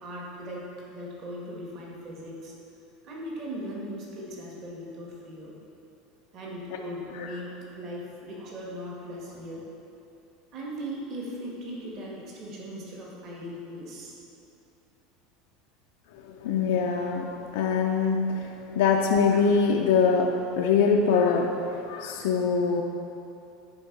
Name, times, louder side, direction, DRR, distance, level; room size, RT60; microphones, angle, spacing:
voice 1, 0.0-2.5 3.0-5.5 6.3-9.7 10.5-14.1, equal, 40° right, -3 dB, 1.5 m, -38 dB
voice 2, 16.4-17.3 17.5-18.4 18.7-20.3 20.6-21.5 21.9-22.8, left 5 dB, 80° left, 0 dB, 0.6 m, -23 dB
10.5 x 4.7 x 4.6 m, 2.8 s
supercardioid pair, 170°, 0 cm